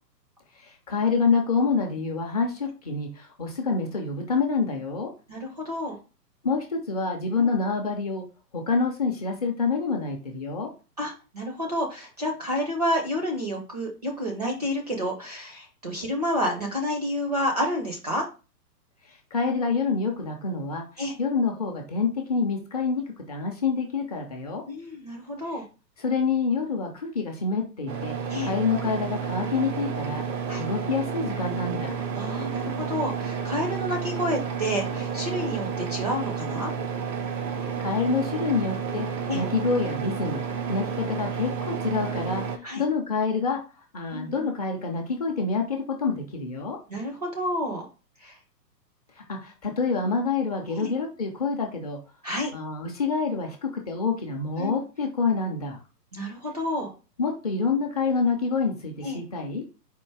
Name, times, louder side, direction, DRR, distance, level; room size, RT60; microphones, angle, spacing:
voice 1, 0.6-5.1 6.4-8.2 8.5-10.7 19.3-20.8 21.2-24.6 26.0-28.2 28.4-30.3 30.6-32.0 37.8-39.1 39.3-40.4 40.7-43.6 43.9-46.8 49.3-52.0 52.5-55.8 57.2-59.6, left 4 dB, 25° left, 2 dB, 0.5 m, -27 dB
voice 2, 5.3-6.0 7.4-7.5 11.0-18.3 21.0-21.1 24.7-25.6 28.3-28.5 30.5-30.6 32.1-36.7 39.3-39.4 42.6-42.8 44.1-44.5 46.9-47.9 48.2-48.4 50.7-50.9 52.2-52.5 54.6-54.8 56.1-56.9 59.0-59.2, equal, 25° right, 1 dB, 0.4 m, -29 dB
sound 1, 27.9-42.6, right 6 dB, 90° right, 0.9 m, -31 dB
4.4 x 2.5 x 4.6 m, 0.33 s
hypercardioid pair, 135°, 50 cm